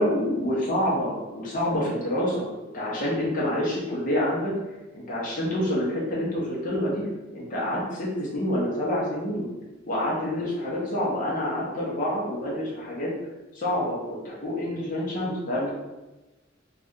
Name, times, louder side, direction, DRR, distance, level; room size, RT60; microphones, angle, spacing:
voice 1, 0.0-4.5 4.9-7.0 7.3-9.5 9.9-13.1 13.5-15.7, left 1 dB, 40° left, -5 dB, 0.6 m, -27 dB
2.6 x 2.2 x 3.6 m, 1.1 s
head